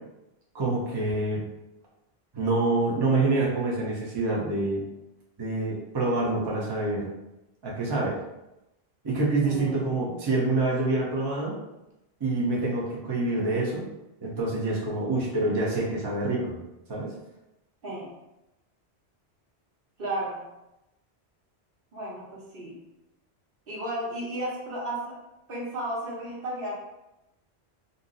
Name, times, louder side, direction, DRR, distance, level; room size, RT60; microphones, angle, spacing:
voice 1, 0.5-1.4 2.3-4.9 5.4-7.1 7.6-8.1 9.0-11.5 12.2-13.8 14.2-16.6 16.9-17.1, right 2 dB, 30° right, -4 dB, 0.5 m, -26 dB
voice 2, 9.4-10.2 17.8-18.1 20.0-20.4 21.9-22.8 23.7-25.1 25.5-26.7, right 1 dB, 60° right, -5 dB, 1.1 m, -34 dB
2.6 x 2.0 x 3.7 m, 0.93 s
omnidirectional pair, 1.1 m